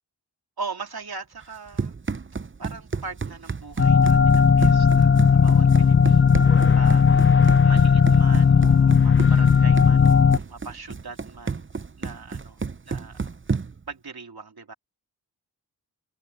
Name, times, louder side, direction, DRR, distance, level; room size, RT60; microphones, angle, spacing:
voice 1, 0.6-1.9 2.6-11.7 12.0-12.6 12.9-13.2 13.9-14.7, right 4 dB, 65° right, 2.8 m, -40 dB
Run, 1.4-13.9, right 5 dB, 30° right, 0.8 m, -32 dB
sound 1, 3.5-4.7 4.9-6.4 7.0-7.1 7.6-8.4 8.7-12.0 12.3-12.8 13.0-13.1, right 5 dB, 90° right, 5.1 m, -50 dB
sound 2, 3.8-10.4, left 6 dB, 30° left, 0.5 m, -16 dB
cardioid pair, 40°, 41 cm